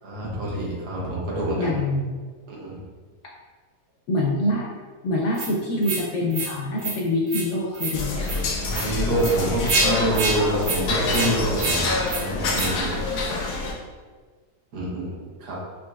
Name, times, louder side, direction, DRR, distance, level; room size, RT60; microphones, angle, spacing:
voice 1, 0.0-1.7 2.5-2.8 8.6-11.9 12.2-13.0 14.7-15.6, right 1 dB, 80° right, -4 dB, 1.5 m, -26 dB
voice 2, 1.6-2.2 4.1-4.7 5.0-8.5, left 1 dB, 65° left, -3 dB, 0.7 m, -25 dB
sound 1, 5.3-5.5 5.8-6.0 6.3-6.5 6.8-7.0 7.3-7.5 7.7-8.0 8.2-8.4 8.7-8.9 9.2-9.3 9.7-9.9 10.1-10.4 10.6-10.8 11.1-11.3 11.6-11.8 12.1-12.2 12.5-12.7, right 3 dB, 60° right, 1.0 m, -26 dB
sound 2, 7.9-13.7, left 3 dB, 90° left, 1.3 m, -26 dB
5.1 x 2.7 x 2.3 m, 1.5 s
omnidirectional pair, 1.7 m